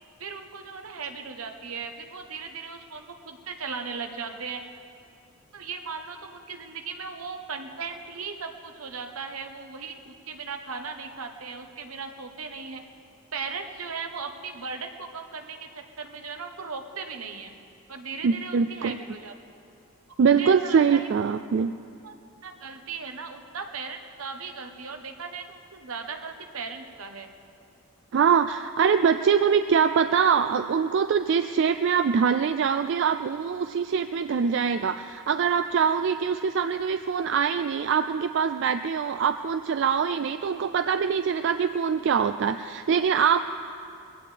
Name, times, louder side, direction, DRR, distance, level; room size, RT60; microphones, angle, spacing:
voice 1, 0.2-4.6 5.5-12.8 13.3-17.5 17.9-19.3 20.2-21.1 22.0-22.1 22.4-27.3, right 5 dB, 80° right, 5 dB, 1.1 m, -37 dB
voice 2, 18.2-19.0 20.2-21.8 28.1-43.4, right 6 dB, 55° right, 10 dB, 0.3 m, -23 dB
21.5 x 16.0 x 3.4 m, 2.5 s
head